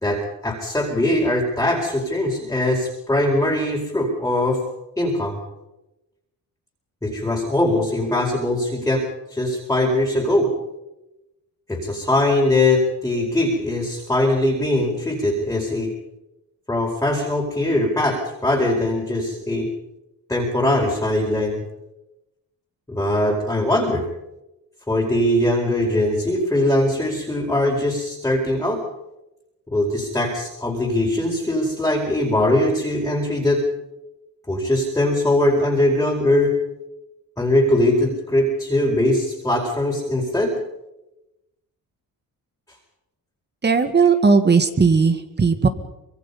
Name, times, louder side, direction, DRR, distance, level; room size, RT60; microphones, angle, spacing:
voice 1, 0.0-4.6 5.0-5.4 7.0-10.5 11.7-15.9 16.7-19.7 20.3-21.6 22.9-24.1 24.9-28.8 29.7-33.6 34.5-36.5 37.4-40.6, left 1 dB, 10° left, -2 dB, 4.5 m, -21 dB
voice 2, 43.6-45.7, right 5 dB, 30° right, 9 dB, 2.0 m, -17 dB
25.0 x 22.0 x 5.5 m, 0.92 s
cardioid pair, 115°, 35 cm